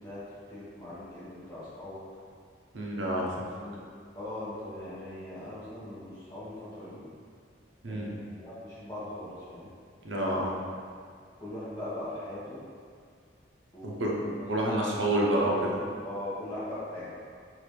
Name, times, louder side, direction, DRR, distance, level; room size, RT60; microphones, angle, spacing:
voice 1, 0.0-2.0 3.5-3.9 4.1-7.0 7.8-9.7 11.4-12.6 13.7-17.2, left 1 dB, 20° left, -11 dB, 1.3 m, -40 dB
voice 2, 2.7-3.5 7.8-8.1 10.0-10.6 13.8-14.2 14.5-15.7, right 1 dB, 75° right, -3 dB, 0.8 m, -28 dB
5.7 x 2.8 x 3.3 m, 2.1 s
head